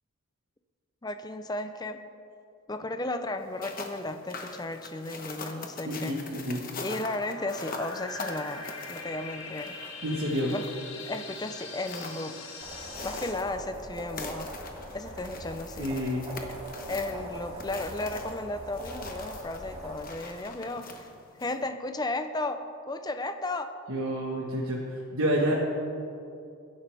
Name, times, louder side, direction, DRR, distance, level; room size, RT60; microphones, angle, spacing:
voice 1, 1.0-2.0 2.7-6.1 6.8-9.8 10.5-10.7 11.1-12.4 13.0-14.5 14.9-15.9 16.9-21.1 21.4-23.8, left 2 dB, 20° left, 8 dB, 0.6 m, -34 dB
sound 1, 3.4-21.7, left 3 dB, 40° left, 1.2 m, -43 dB
voice 2, 5.8-6.6 10.0-10.5 15.8-16.2 23.9-25.6, equal, 70° right, -4 dB, 1.5 m, -29 dB
sound 2, 7.1-13.3, left 3 dB, 65° left, 1.8 m, -42 dB
sound 3, 12.6-20.0, right 1 dB, 25° right, 2.8 m, -41 dB
21.5 x 11.0 x 3.5 m, 2.6 s
head